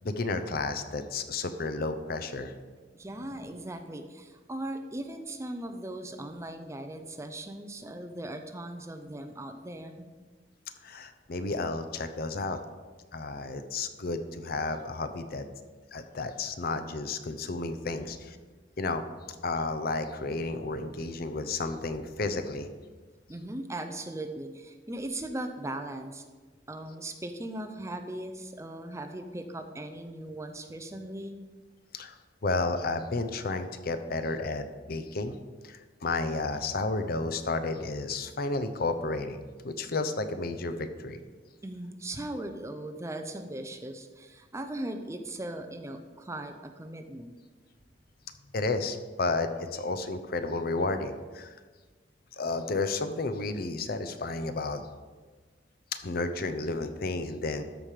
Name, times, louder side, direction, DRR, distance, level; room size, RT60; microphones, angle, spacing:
voice 1, 0.0-2.5 10.8-12.6 13.1-15.5 15.9-18.4 18.8-19.0 19.4-22.7 31.9-32.1 32.4-35.4 35.6-41.2 48.5-51.6 52.4-54.8 56.0-57.6, left 3 dB, 55° left, 10 dB, 0.7 m, -32 dB
voice 2, 2.9-10.1 23.3-26.3 26.7-31.4 41.6-47.3, right 1 dB, 15° right, 6 dB, 0.6 m, -39 dB
13.0 x 5.1 x 4.9 m, 1.4 s
head